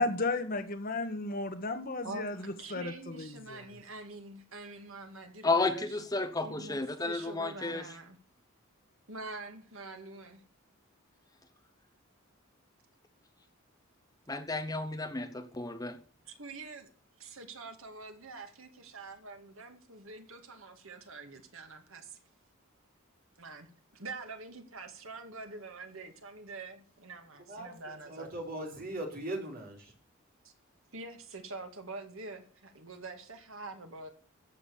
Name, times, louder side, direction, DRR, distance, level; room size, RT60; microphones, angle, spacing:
voice 1, 0.0-3.6, left 2 dB, 40° left, 1.7 m, -34 dB
voice 2, 2.0-6.0 6.4-8.2 9.1-10.4 16.3-16.9 17.2-22.2 23.4-23.7 23.9-28.3 30.4-30.5 30.9-34.1, right 3 dB, 70° right, 2.3 m, -45 dB
voice 3, 5.4-7.8 14.3-16.0, left 3 dB, 15° left, 1.0 m, -32 dB
voice 4, 27.5-29.9, right 1 dB, 45° right, 4.4 m, -40 dB
14.0 x 8.6 x 7.1 m
head